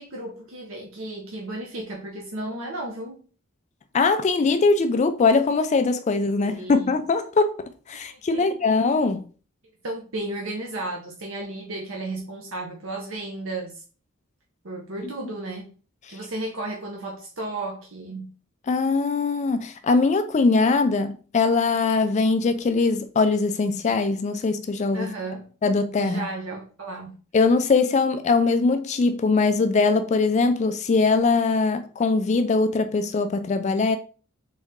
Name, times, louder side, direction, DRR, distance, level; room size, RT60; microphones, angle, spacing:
voice 1, 0.0-3.2 6.4-6.9 8.1-8.5 9.8-13.8 14.6-15.7 16.1-18.3 24.9-25.5 26.0-27.2, right 2 dB, 65° right, 0.9 m, -34 dB
voice 2, 3.9-9.2 16.1-16.2 18.7-25.1 25.6-26.2 27.3-34.0, left 4 dB, 35° left, 0.3 m, -21 dB
4.2 x 3.6 x 3.6 m
head